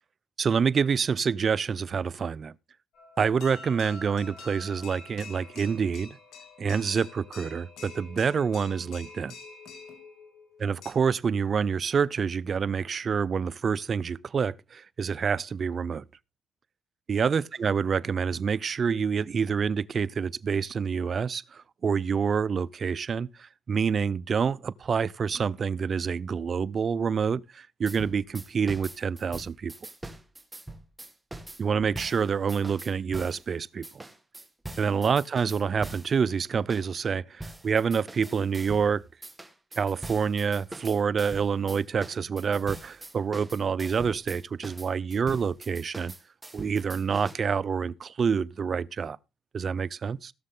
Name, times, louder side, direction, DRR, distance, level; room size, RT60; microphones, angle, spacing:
voice 1, 0.4-2.5 3.2-6.2 6.6-9.3 10.6-16.0 17.1-29.7 31.6-33.9 34.8-39.0 39.8-46.1 46.5-49.2 49.5-50.3, right 6 dB, 45° right, 0.5 m, -27 dB
sound 1, 2.9-10.9, left 3 dB, 75° left, 2.7 m, -46 dB
sound 2, 27.9-33.4 33.8-36.2 36.7-36.9 37.4-38.9 39.2-47.3, right 2 dB, 10° right, 1.5 m, -43 dB
17.5 x 6.5 x 3.8 m
cardioid pair, 90°, 0 cm